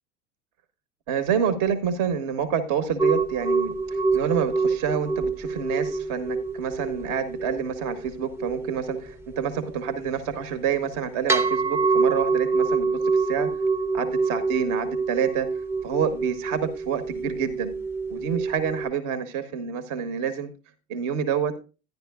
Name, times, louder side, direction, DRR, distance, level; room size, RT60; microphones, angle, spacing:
voice 1, 1.1-13.5 13.9-15.5 15.8-17.7 18.1-20.5 20.9-21.5, right 7 dB, 50° right, 11 dB, 1.0 m, -28 dB
sound 1, 3.0-18.9, right 4 dB, 5° right, 0.5 m, -27 dB
10.5 x 10.5 x 2.3 m, 0.31 s
hypercardioid pair, 85°, 39 cm